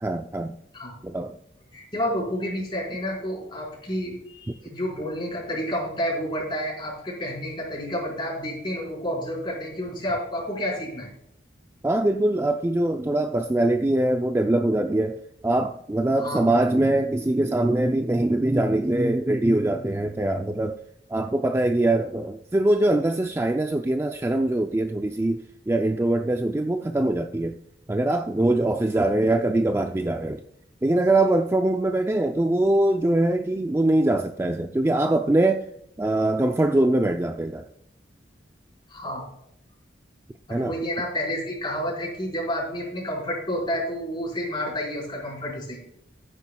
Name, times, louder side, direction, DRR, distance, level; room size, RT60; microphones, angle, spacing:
voice 1, 0.0-0.6 1.0-1.3 11.8-20.8 21.1-27.6 27.9-30.4 30.8-35.7 36.0-37.6 40.5-40.8, right 1 dB, 15° right, 0.4 m, -23 dB
voice 2, 1.7-11.1 16.2-16.4 38.9-39.2 40.5-45.8, equal, 25° left, 4.7 m, -30 dB
15.5 x 9.7 x 2.3 m
head